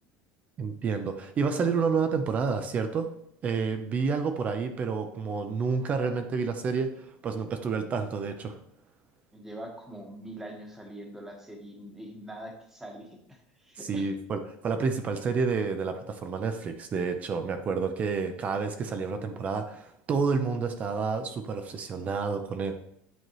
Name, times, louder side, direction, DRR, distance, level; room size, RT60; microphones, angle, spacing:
voice 1, 0.6-3.1 3.4-8.6 13.8-22.7, right 5 dB, 30° right, 7 dB, 0.6 m, -29 dB
voice 2, 9.3-14.1, right 1 dB, 10° right, 2 dB, 1.4 m, -43 dB
9.2 x 4.6 x 3.1 m, 0.72 s
cardioid pair, 140°, 5 cm